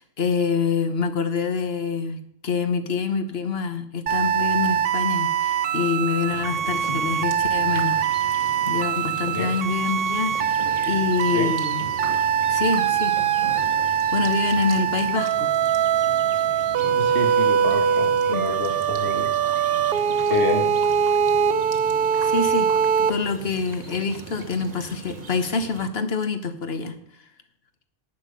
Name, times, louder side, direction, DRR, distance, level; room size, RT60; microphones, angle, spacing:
voice 1, 0.0-11.8 12.5-13.2 14.1-15.5 18.3-18.4 22.2-22.7 23.0-27.0, left 5 dB, 70° left, 8 dB, 1.3 m, -26 dB
sound 1, 4.1-23.1, right 8 dB, 65° right, 0.8 m, -22 dB
sound 2, 6.3-25.9, right 3 dB, 40° right, 1.3 m, -40 dB
voice 2, 16.8-19.3 20.3-20.7, left 2 dB, 90° left, 3 dB, 2.2 m, -28 dB
11.0 x 9.3 x 5.2 m, 0.72 s
omnidirectional pair, 1.1 m